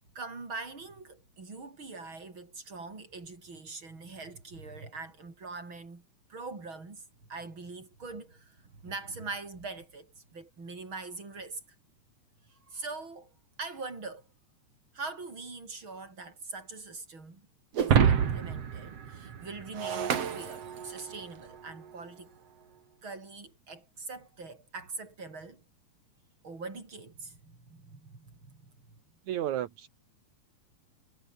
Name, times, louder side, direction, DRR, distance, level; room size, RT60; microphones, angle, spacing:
voice 1, 0.1-6.0 6.3-7.0 7.3-11.6 12.5-13.3 13.6-14.3 14.9-17.5 17.8-22.3 23.0-25.6 26.4-29.0, right 3 dB, 40° right, 6.2 m, -43 dB
Shatter, 17.8-21.2, right 7 dB, 55° right, 3.1 m, -28 dB
voice 2, 29.3-29.9, right 12 dB, 75° right, 2.7 m, -32 dB
omnidirectional pair, 3.4 m